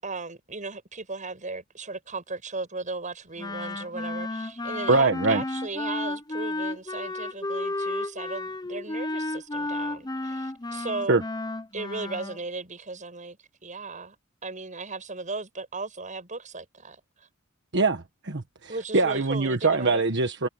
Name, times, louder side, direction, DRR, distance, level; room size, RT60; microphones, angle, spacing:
voice 1, 0.0-11.2 11.7-13.4 13.6-14.2 14.4-17.3 18.7-20.0, right 3 dB, 40° right, 7.6 m, -36 dB
Wind instrument woodwind instrument, 3.4-12.4, left 2 dB, 20° left, 0.8 m, -32 dB
voice 2, 4.9-5.4 11.1-11.2 17.7-20.5, right 3 dB, 60° right, 1.4 m, -23 dB
head